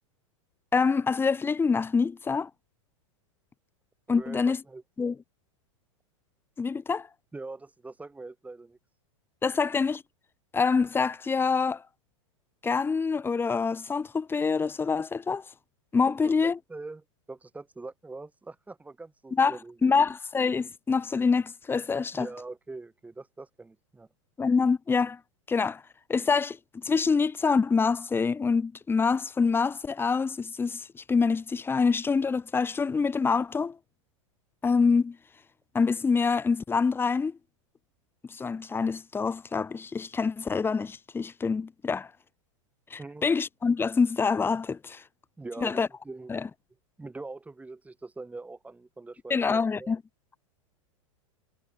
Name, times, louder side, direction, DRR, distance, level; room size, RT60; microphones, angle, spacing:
voice 1, 0.7-2.5 4.1-4.6 5.0-5.1 6.6-7.1 9.4-10.0 10.5-11.8 12.6-15.4 15.9-16.6 19.4-19.5 19.8-22.3 24.4-25.2 25.5-25.8 26.1-33.8 34.6-35.2 35.7-37.4 38.3-42.1 42.9-45.0 45.6-45.9 46.3-46.5 49.3-50.0, left 5 dB, 15° left, 1.3 m, -26 dB
voice 2, 4.1-4.8 7.3-8.8 16.1-20.1 22.1-24.1 43.0-43.3 45.4-46.3 47.0-49.9, right 3 dB, 10° right, 3.0 m, -43 dB
hypercardioid pair, 110°, 17 cm